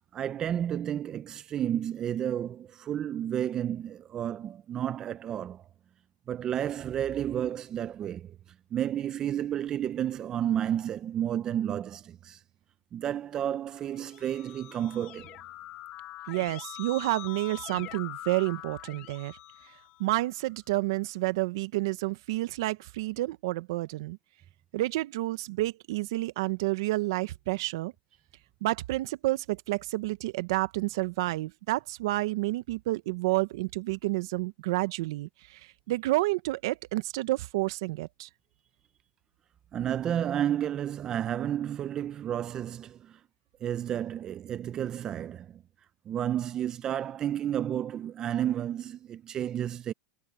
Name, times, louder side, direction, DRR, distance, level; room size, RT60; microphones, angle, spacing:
voice 1, 0.1-5.6 6.3-8.4 8.7-12.4 12.9-15.4 39.7-43.2 43.6-45.6 46.1-49.9, right 10 dB, 30° right, 0.7 m, -31 dB
Keyboard (musical), 13.8-20.4, left 16 dB, 45° left, 1.6 m, -44 dB
voice 2, 16.3-19.4 20.0-24.2 24.7-27.9 28.6-38.3, right 19 dB, 70° right, 1.1 m, -30 dB
supercardioid pair, 135°, 2 cm